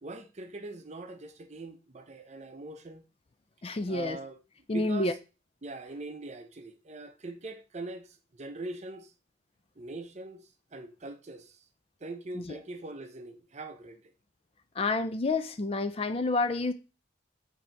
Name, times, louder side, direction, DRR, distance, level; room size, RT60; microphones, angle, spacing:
voice 1, 0.0-3.0 3.9-4.4 4.7-5.2 5.6-9.1 9.8-11.6 12.0-14.1, right 2 dB, 35° right, 0.6 m, -42 dB
voice 2, 3.6-4.2 4.7-5.1 12.4-12.6 14.8-16.7, left 2 dB, 30° left, 0.4 m, -29 dB
7.6 x 2.8 x 4.5 m
head